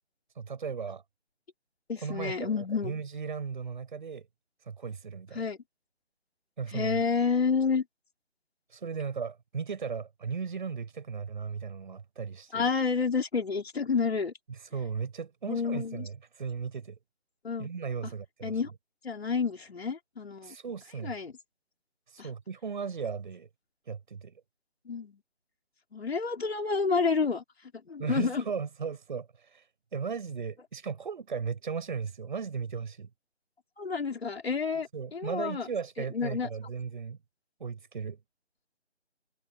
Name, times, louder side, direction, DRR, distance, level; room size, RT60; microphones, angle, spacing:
voice 1, 0.3-1.0 2.0-4.3 4.6-5.4 6.6-7.0 8.7-12.7 14.6-17.0 17.6-18.6 20.4-21.1 22.1-23.5 23.9-24.3 28.0-33.1 34.9-37.2 37.6-38.2, right 6 dB, 45° right, 7.9 m, -36 dB
voice 2, 1.9-2.9 5.3-5.6 6.7-7.8 12.5-14.3 15.5-16.1 17.4-17.7 18.0-18.1 18.4-18.7 19.0-20.6 21.0-21.3 22.2-22.3 24.9-25.2 25.9-27.4 27.9-28.5 33.8-35.7 36.1-36.5, left 5 dB, 60° left, 3.9 m, -29 dB
figure-of-eight pair, 165°, 34 cm